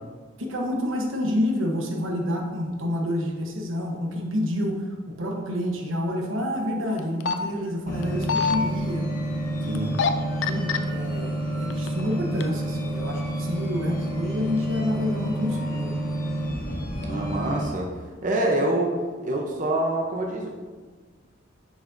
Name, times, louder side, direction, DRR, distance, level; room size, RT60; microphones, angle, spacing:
voice 1, 0.4-4.9 5.2-9.1 9.6-9.9 10.5-15.9, left 1 dB, 85° right, 1 dB, 1.1 m, -28 dB
sound 1, 7.0-7.3 8.0-8.6 9.7-10.1 10.4-10.8 11.5-12.0 12.4-12.5, left 6 dB, 65° left, 0.4 m, -24 dB
sound 2, 7.9-17.6, right 1 dB, 45° left, 1.2 m, -29 dB
voice 2, 9.7-10.0 17.1-17.9 18.2-20.5, right 1 dB, 40° right, -1 dB, 0.8 m, -26 dB
10.0 x 5.0 x 2.7 m, 1.4 s
head